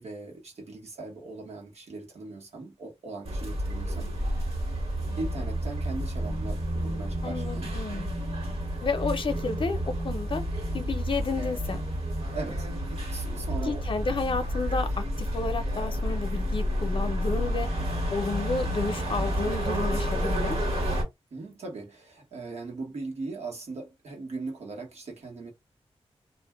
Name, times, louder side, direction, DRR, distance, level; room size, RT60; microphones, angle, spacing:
voice 1, 0.0-4.7 5.2-7.9 8.4-8.6 12.2-12.7 13.1-14.1 21.3-25.5, right 3 dB, 80° right, 1.2 m, -39 dB
sound 1, 3.3-21.0, equal, 65° right, 1.4 m, -30 dB
voice 2, 7.2-8.1 8.8-9.8 10.0-10.4 10.7-11.8 13.7-17.7 18.1-20.6, left 3 dB, 50° left, 0.6 m, -31 dB
2.5 x 2.2 x 3.3 m
wide cardioid pair, 105°, 11 cm